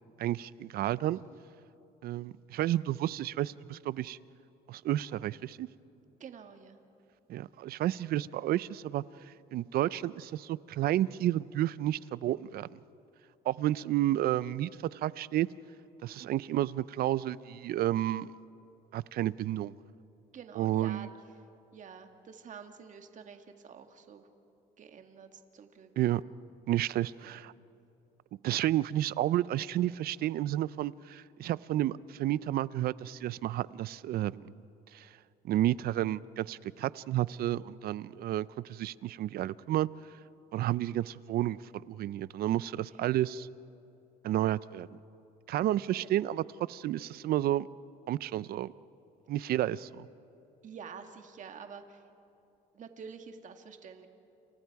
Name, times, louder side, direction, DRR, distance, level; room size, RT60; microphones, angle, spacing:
voice 1, 0.2-1.2 2.0-4.2 4.7-5.7 7.3-9.0 9.5-12.7 13.5-15.5 16.0-18.3 18.9-19.7 20.6-21.1 26.0-26.2 26.7-27.5 28.4-34.5 34.9-35.1 35.4-39.9 40.5-41.6 41.9-43.5 44.2-44.9 45.5-47.7 48.1-48.7 49.3-49.9, right 13 dB, 65° right, 19 dB, 0.6 m, -31 dB
voice 2, 6.2-6.8 16.2-16.4 20.3-21.1 21.7-24.3 24.8-26.1 27.2-27.4 45.9-46.1 50.6-52.0 52.7-54.1, right 6 dB, 50° right, 6 dB, 1.9 m, -48 dB
29.0 x 28.5 x 4.8 m, 2.9 s
cardioid pair, 110°, 17 cm